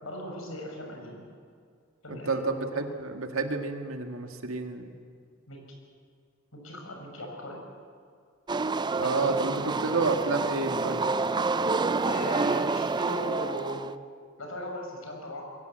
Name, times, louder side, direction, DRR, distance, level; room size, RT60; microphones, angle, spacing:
voice 1, 0.0-1.2 2.0-2.8 5.5-5.6 6.5-7.6 9.0-9.1 9.5-10.1 12.0-13.8 14.4-15.4, equal, 85° left, 1 dB, 5.9 m, -38 dB
voice 2, 2.1-4.9 9.0-11.1, right 3 dB, 90° right, 5 dB, 2.0 m, -30 dB
sound 1, 8.5-13.9, right 3 dB, 20° right, 0.5 m, -28 dB
21.5 x 17.5 x 8.1 m, 2.1 s
head